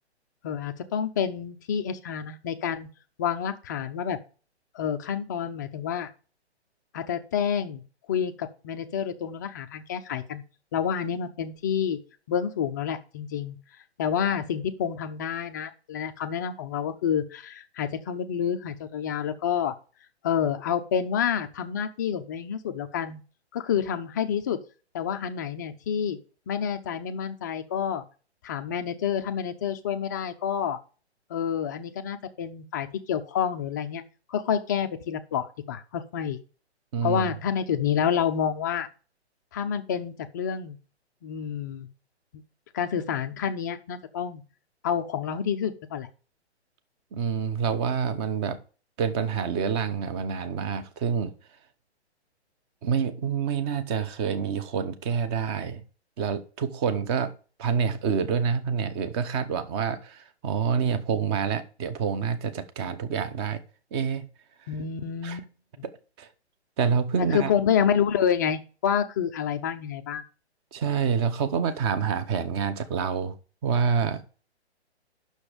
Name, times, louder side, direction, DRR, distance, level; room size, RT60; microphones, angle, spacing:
voice 1, 0.4-2.9 3.2-4.2 4.7-6.1 6.9-7.8 8.1-10.4 10.7-12.0 12.3-13.6 14.0-19.7 20.2-23.2 23.5-24.6 24.9-26.2 26.5-28.0 28.4-30.8 31.3-34.0 34.3-36.4 37.0-38.9 39.5-40.8 41.2-41.9 42.3-42.4 42.7-44.4 44.8-46.1 64.7-65.5 67.2-70.2, left 8 dB, 20° left, 0.4 m, -28 dB
voice 2, 36.9-37.3 47.1-48.6 49.0-51.3 52.8-55.8 56.2-63.6 63.9-64.3 65.2-65.4 65.8-66.3 66.8-67.5 70.7-73.3 73.6-74.2, right 6 dB, 25° right, 0.8 m, -27 dB
8.7 x 6.3 x 5.0 m
hypercardioid pair, 140°, 34 cm